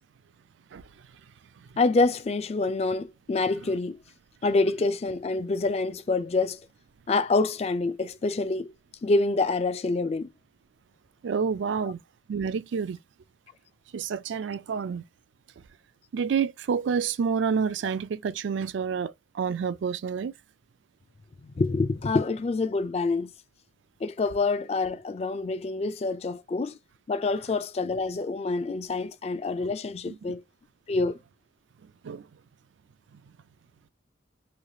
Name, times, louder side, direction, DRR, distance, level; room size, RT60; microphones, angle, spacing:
voice 1, 1.8-4.0 4.4-6.6 7.1-8.7 9.0-10.3 21.4-23.3 24.0-26.8 27.1-30.4 30.9-31.2, left 3 dB, 35° left, 0.3 m, -26 dB
voice 2, 11.2-12.0 12.3-13.0 13.9-15.0 16.1-20.3 30.1-30.2 32.0-32.3, right 6 dB, 75° right, 0.4 m, -28 dB
3.2 x 2.3 x 2.7 m
head